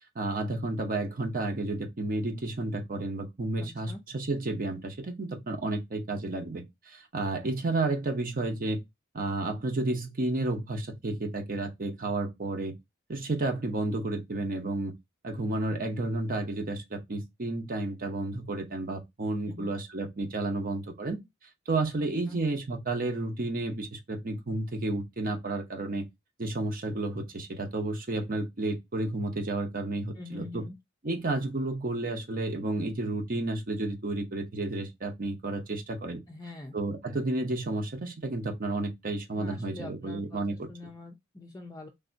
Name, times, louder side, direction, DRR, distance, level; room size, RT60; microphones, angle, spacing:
voice 1, 0.1-8.8 9.1-12.7 13.1-14.9 15.2-21.2 21.7-26.1 26.4-30.6 31.0-36.2 36.7-40.7, right 2 dB, 45° right, 0.9 m, -31 dB
voice 2, 3.6-4.0 19.5-19.7 22.0-22.4 30.1-30.8 36.3-36.8 39.4-41.9, left 2 dB, 15° left, 0.5 m, -44 dB
3.4 x 2.7 x 2.6 m
head